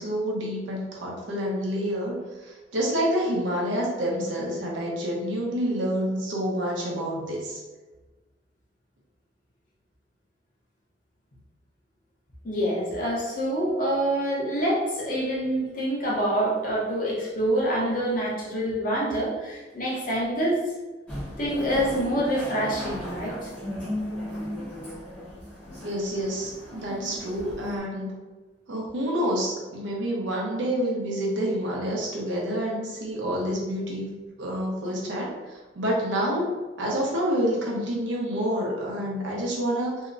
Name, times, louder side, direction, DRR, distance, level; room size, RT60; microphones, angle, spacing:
voice 1, 0.0-7.6 25.8-28.1 28.7-34.1 34.4-40.0, equal, 90° right, -3 dB, 0.7 m, -28 dB
voice 2, 12.4-20.6 21.4-23.5, right 1 dB, 45° left, -5 dB, 0.6 m, -26 dB
sound 1, 21.1-27.8, left 1 dB, 5° left, 0.7 m, -36 dB
2.8 x 2.0 x 2.4 m, 1.2 s
head